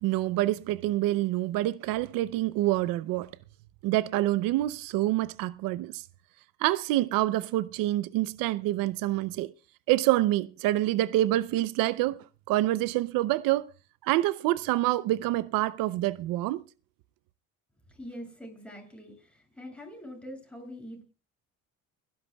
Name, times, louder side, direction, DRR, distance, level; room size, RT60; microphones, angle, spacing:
voice 1, 0.0-3.3 3.8-6.0 6.6-9.5 9.9-13.7 14.0-16.6, right 16 dB, 85° right, 0.6 m, -27 dB
voice 2, 17.9-21.0, equal, 5° left, 7.3 m, -44 dB
30.0 x 11.5 x 2.3 m
cardioid pair, 105°, 33 cm